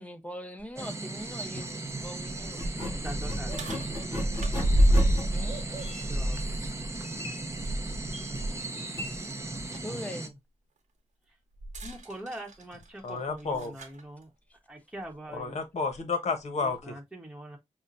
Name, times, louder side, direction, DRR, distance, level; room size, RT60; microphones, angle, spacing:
voice 1, 0.0-2.6 5.3-5.6 9.8-10.4, equal, 10° left, 0.7 m, -41 dB
sound 1, 0.6-0.7 1.2-1.3 1.9-8.6 9.0-9.2 11.6-14.0 15.0-15.1 15.9-16.0, equal, 90° right, 0.9 m, -29 dB
sound 2, 0.8-10.3, right 2 dB, 20° right, 0.6 m, -37 dB
sound 3, 1.4-1.7 2.5-10.0, left 1 dB, 45° left, 2.7 m, -40 dB
voice 2, 3.0-3.5 5.8-6.6 11.8-14.3 14.7-15.6 16.6-17.6, right 1 dB, 5° right, 1.1 m, -43 dB
voice 3, 13.0-13.7 15.3-16.9, left 4 dB, 65° left, 1.0 m, -31 dB
5.5 x 2.2 x 2.5 m
wide cardioid pair, 95°, 12 cm